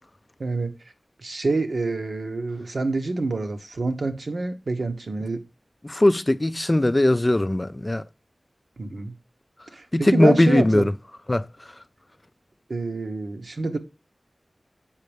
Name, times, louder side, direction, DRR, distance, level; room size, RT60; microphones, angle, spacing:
voice 1, 0.4-0.7 1.2-5.4 8.8-9.1 9.7-10.8 12.7-13.8, right 3 dB, 80° right, 0.9 m, -27 dB
voice 2, 5.8-8.0 9.9-10.9 11.3-11.5, left 1 dB, 30° left, 0.3 m, -19 dB
7.4 x 5.2 x 3.4 m
wide cardioid pair, 55°, 0 cm